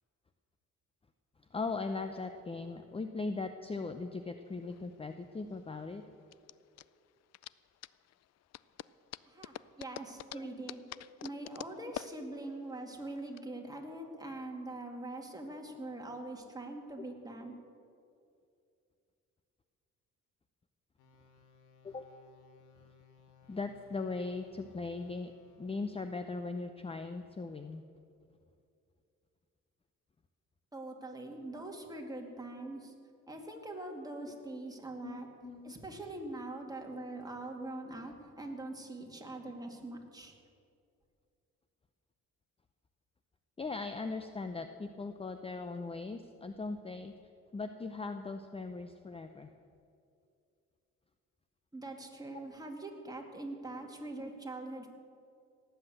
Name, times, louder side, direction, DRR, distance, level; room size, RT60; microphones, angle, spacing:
voice 1, 1.5-6.0 10.3-10.5 21.8-22.0 23.5-25.3 25.6-27.8 35.0-35.7 37.0-37.1 37.6-37.7 43.6-47.1 47.5-49.5 54.2-54.3, left 3 dB, 20° left, 8 dB, 0.7 m, -39 dB
sound 1, 4.5-13.4, left 13 dB, 60° left, 0.4 m, -48 dB
voice 2, 9.3-10.8 11.2-17.6 30.7-32.9 33.3-35.3 35.6-40.3 51.7-54.9, right 2 dB, 10° right, 1 dB, 2.3 m, -43 dB
sound 2, 21.0-26.2, left 6 dB, 85° left, 1.6 m, -64 dB
18.0 x 8.0 x 7.9 m, 2.5 s
cardioid pair, 90°, 30 cm